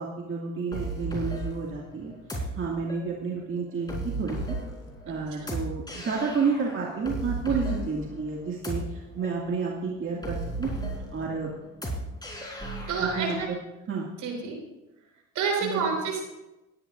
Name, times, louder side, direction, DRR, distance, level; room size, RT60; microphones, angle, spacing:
voice 1, 0.0-4.6 5.0-10.7 11.1-11.5 13.0-13.4 13.9-14.1 15.6-15.9, right 5 dB, 35° right, -2 dB, 2.2 m, -31 dB
sound 1, 0.7-13.4, right 2 dB, 10° left, 4.4 m, -35 dB
voice 2, 7.5-7.8 12.9-13.5 14.2-14.6 15.3-16.3, right 5 dB, 60° right, 1 dB, 5.0 m, -29 dB
20.5 x 10.5 x 2.6 m, 0.98 s
hypercardioid pair, 65°, 36 cm